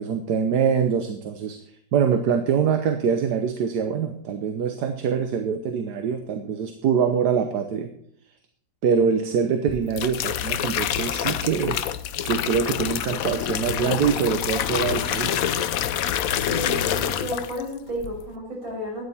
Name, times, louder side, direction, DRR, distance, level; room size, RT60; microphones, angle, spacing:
voice 1, 0.0-1.6 1.9-7.9 8.8-11.8 12.2-15.4, right 7 dB, 65° right, 7 dB, 1.4 m, -24 dB
sound 1, 9.7-17.7 18.0-18.3, left 10 dB, 65° left, 0.9 m, -27 dB
voice 2, 16.4-19.0, equal, 50° right, -2 dB, 6.4 m, -32 dB
12.0 x 10.0 x 4.3 m, 0.66 s
omnidirectional pair, 2.0 m